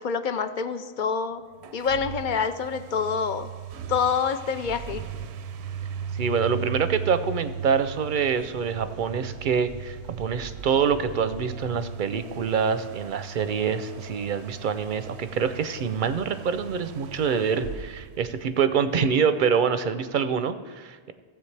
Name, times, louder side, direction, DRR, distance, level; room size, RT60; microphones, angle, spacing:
voice 1, 0.0-1.4 1.7-3.5 3.9-5.0, left 6 dB, 55° left, 10 dB, 0.6 m, -26 dB
sound 1, 1.5-19.0, right 7 dB, 90° right, 0.9 m, -38 dB
voice 2, 6.1-21.1, right 6 dB, 60° right, 11 dB, 0.6 m, -26 dB
16.0 x 7.7 x 3.3 m, 1.5 s
omnidirectional pair, 1.1 m